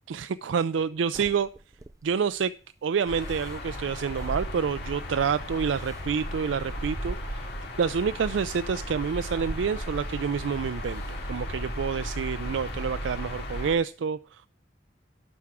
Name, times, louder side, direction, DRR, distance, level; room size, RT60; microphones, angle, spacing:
voice 1, 0.1-1.5 2.0-2.5 2.8-7.5 7.8-14.5, right 6 dB, 90° right, 13 dB, 0.4 m, -28 dB
sound 1, 1.1-2.3 3.2-5.1 5.6-7.8 8.4-8.6 9.2-10.3 10.9-11.2 11.6-12.9, right 2 dB, 20° right, 0.4 m, -40 dB
sound 2, 3.1-13.7, left 1 dB, 60° left, 2.3 m, -36 dB
11.5 x 4.8 x 7.4 m, 0.40 s
head